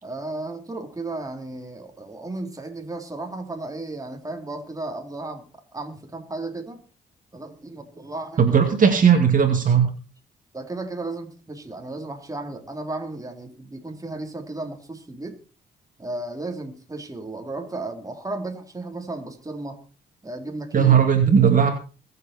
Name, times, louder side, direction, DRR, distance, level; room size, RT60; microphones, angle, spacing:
voice 1, 0.0-5.5 5.7-6.8 7.3-8.6 10.5-15.4 16.0-19.8 20.2-21.0 21.2-21.3, right 2 dB, 20° right, 4 dB, 3.5 m, -34 dB
voice 2, 8.4-9.9 20.7-21.7, right 7 dB, 45° right, 5 dB, 2.4 m, -17 dB
22.0 x 8.2 x 4.4 m, 0.34 s
cardioid pair, 75°, 19 cm